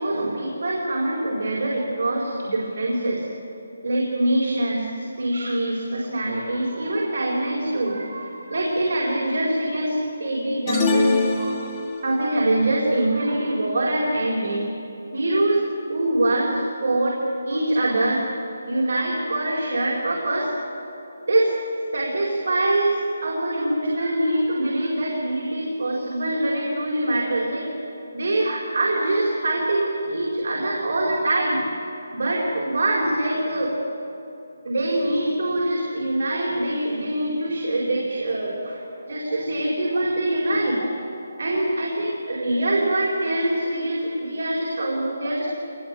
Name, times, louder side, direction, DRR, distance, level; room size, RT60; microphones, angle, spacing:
voice 1, 0.0-3.2 3.8-11.5 12.0-14.7 15.1-17.2 17.5-18.2 18.7-20.5 21.3-21.5 21.9-27.7 28.1-31.6 32.1-33.7 34.6-38.8 39.1-45.5, right 1 dB, 50° right, -3 dB, 4.6 m, -24 dB
sound 1, 10.7-12.2, left 3 dB, 10° left, 1.5 m, -23 dB
25.0 x 20.5 x 9.0 m, 2.9 s
hypercardioid pair, 175°, 0 cm